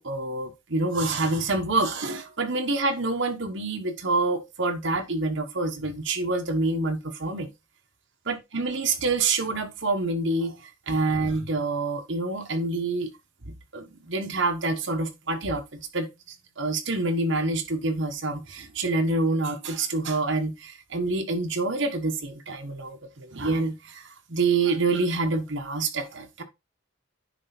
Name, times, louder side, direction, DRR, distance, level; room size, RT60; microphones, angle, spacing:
voice 1, 0.0-7.5 8.3-13.1 13.4-16.1 16.6-26.4, right 3 dB, 65° right, 1.3 m, -27 dB
9.7 x 3.4 x 4.3 m
head